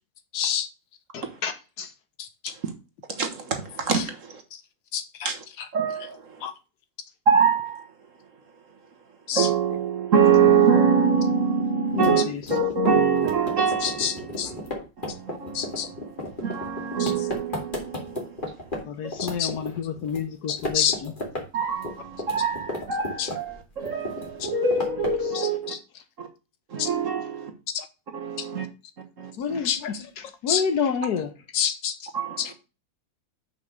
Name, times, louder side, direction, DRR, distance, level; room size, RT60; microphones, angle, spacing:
voice 1, 0.3-0.7 2.4-2.5 4.9-5.3 6.4-6.5 9.3-9.5 13.8-14.5 15.5-15.9 17.0-17.1 19.2-19.5 20.5-21.0 23.2-23.3 25.7-25.8 26.8-26.9 29.7-29.8 30.5-30.6 31.5-31.9 32.4-32.5, left 9 dB, 85° left, 1.7 m, -27 dB
voice 2, 1.1-1.9 11.9-12.4 14.4-14.5 18.8-21.1 29.4-31.3, left 6 dB, 65° left, 1.4 m, -29 dB
voice 3, 3.1-4.4 5.2-5.4 5.7-6.5 7.3-7.9 9.3-12.2 12.5-14.7 15.0-18.6 19.0-19.1 21.5-25.7 26.2-26.3 26.7-27.5 28.1-28.7 29.2-29.6 32.1-32.5, right 6 dB, 45° right, 1.5 m, -24 dB
sound 1, 11.9-18.8 19.1-20.2 20.5-21.4 21.7-23.6 23.9-25.3, left 1 dB, 25° left, 2.6 m, -33 dB
6.3 x 5.5 x 6.3 m
omnidirectional pair, 2.0 m